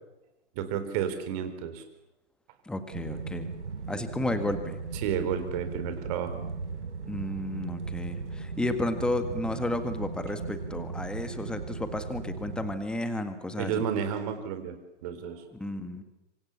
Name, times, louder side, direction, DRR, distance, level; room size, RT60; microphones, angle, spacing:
voice 1, 0.5-1.8 4.9-6.3 13.6-14.8 15.0-15.4, right 8 dB, 30° right, 9 dB, 4.3 m, -31 dB
voice 2, 2.7-3.5 3.9-4.8 7.1-13.8 15.5-16.0, left 1 dB, ahead, 9 dB, 1.7 m, -32 dB
sound 1, 2.9-12.7, right 4 dB, 70° right, 4.4 m, -37 dB
27.0 x 26.0 x 7.2 m, 0.96 s
figure-of-eight pair, 135°, 35 cm